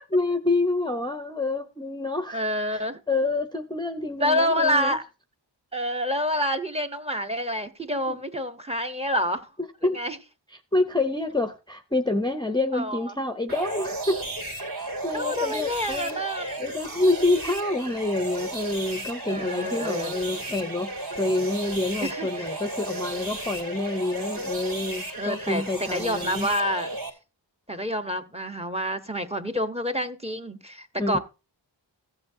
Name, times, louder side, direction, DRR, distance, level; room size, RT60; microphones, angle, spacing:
voice 1, 0.1-2.4 2.7-2.8 3.1-5.0 8.1-8.2 9.8-10.0 10.5-14.2 14.7-16.2 16.6-26.5 31.0-31.2, left 2 dB, 10° left, 0.7 m, -27 dB
voice 2, 2.3-3.0 4.2-5.0 5.7-9.5 9.9-10.2 12.7-13.1 15.1-16.6 19.2-20.1 22.0-22.5 25.2-26.9 27.7-31.2, equal, 15° right, 1.0 m, -28 dB
sound 1, 13.5-27.1, right 2 dB, 50° right, 2.6 m, -34 dB
15.0 x 7.9 x 2.7 m
wide cardioid pair, 100°, 45 cm